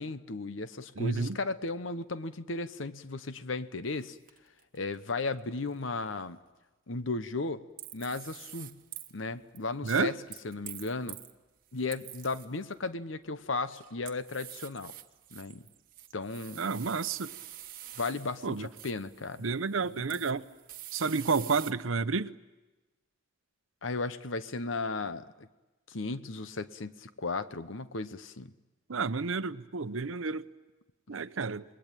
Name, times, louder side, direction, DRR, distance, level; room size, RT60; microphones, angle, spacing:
voice 1, 0.0-4.2 4.7-6.4 6.9-7.6 7.9-8.8 9.1-10.2 10.4-11.2 11.7-14.9 15.3-15.6 16.1-16.6 18.0-19.5 23.8-25.5 25.9-28.5, left 3 dB, 75° left, 1.0 m, -35 dB
voice 2, 1.0-1.4 9.8-10.1 16.6-17.3 18.4-18.7 19.4-20.5 20.9-22.3 28.9-30.4 31.1-31.6, right 4 dB, 85° right, 0.8 m, -30 dB
sound 1, 4.0-4.1 4.3-5.3 7.8-9.1 9.5-11.3 11.7-12.7 13.5-21.7, right 13 dB, 45° right, 1.1 m, -47 dB
27.5 x 21.0 x 9.0 m
head